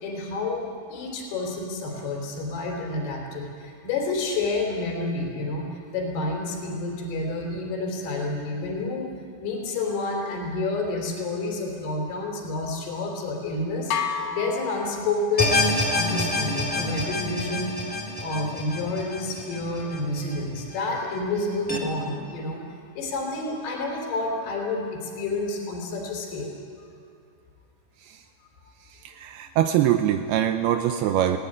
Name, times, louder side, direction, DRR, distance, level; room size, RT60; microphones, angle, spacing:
voice 1, 0.0-9.1 9.4-15.7 15.9-22.6 22.9-26.5 26.8-26.9, left 2 dB, 60° left, 1 dB, 5.0 m, -29 dB
sound 1, 13.9-15.7, left 6 dB, 85° left, 3.6 m, -31 dB
sound 2, 15.4-20.6 21.0-21.1 21.7-21.8, left 2 dB, 5° left, 1.4 m, -27 dB
voice 2, 29.0-31.4, right 11 dB, 85° right, 6 dB, 2.2 m, -23 dB
19.5 x 18.0 x 9.9 m, 2.4 s
omnidirectional pair, 5.5 m